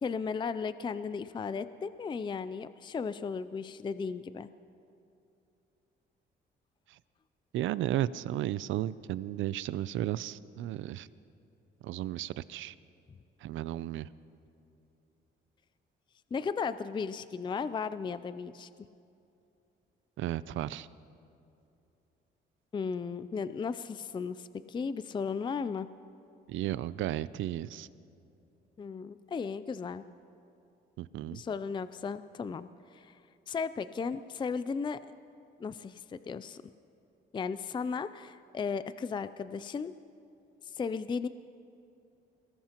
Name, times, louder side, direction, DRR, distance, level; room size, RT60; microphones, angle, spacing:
voice 1, 0.0-4.5 16.3-18.7 22.7-25.9 28.8-30.0 31.3-33.2 33.5-35.0 35.6-36.6 37.3-39.9 40.6-41.3, left 5 dB, 25° left, 14 dB, 0.4 m, -35 dB
voice 2, 7.5-11.1 11.8-12.7 13.4-14.1 20.2-20.9 26.5-27.9 31.0-31.4, right 13 dB, 80° right, 18 dB, 0.4 m, -34 dB
23.0 x 19.0 x 3.0 m, 2.7 s
cardioid pair, 90°, 20 cm